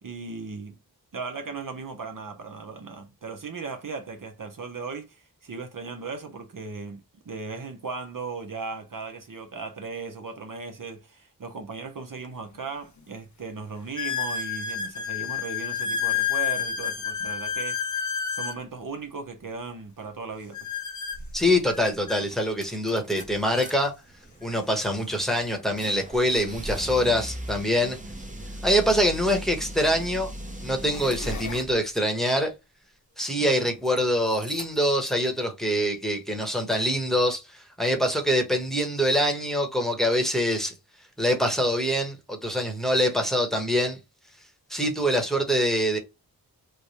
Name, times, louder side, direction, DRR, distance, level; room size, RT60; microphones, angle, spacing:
voice 1, 0.0-0.8 1.1-17.8 18.3-20.7, right 4 dB, 60° right, 0.7 m, -37 dB
sound 1, 12.2-12.3 13.0-13.1 14.0-18.6 20.5-22.2 23.2-23.3 23.5-23.7 24.5-24.6 26.8-26.9 29.0-29.1 29.8-30.1 30.7-31.6, left 7 dB, 50° left, 0.7 m, -30 dB
voice 2, 21.3-23.9 24.4-28.0 28.6-30.3 30.6-32.5 33.2-40.7 41.2-44.0 44.7-46.0, equal, ahead, 1.0 m, -24 dB
sound 2, 21.7-21.8 22.2-23.7 24.1-31.8 33.3-34.0 34.3-35.3, equal, 20° right, 0.7 m, -39 dB
3.3 x 2.1 x 4.0 m
wide cardioid pair, 60°, 37 cm